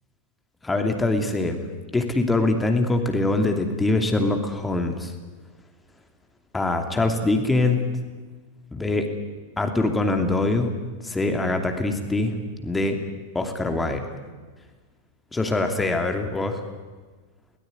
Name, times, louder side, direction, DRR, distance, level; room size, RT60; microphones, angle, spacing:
voice 1, 0.6-1.7 1.9-5.1 6.5-7.8 8.7-9.1 9.6-10.7 11.0-13.0 13.3-14.1 15.3-16.6, left 2 dB, 10° left, 5 dB, 2.8 m, -23 dB
22.0 x 18.5 x 9.5 m, 1.4 s
figure-of-eight pair, 90°, 0 cm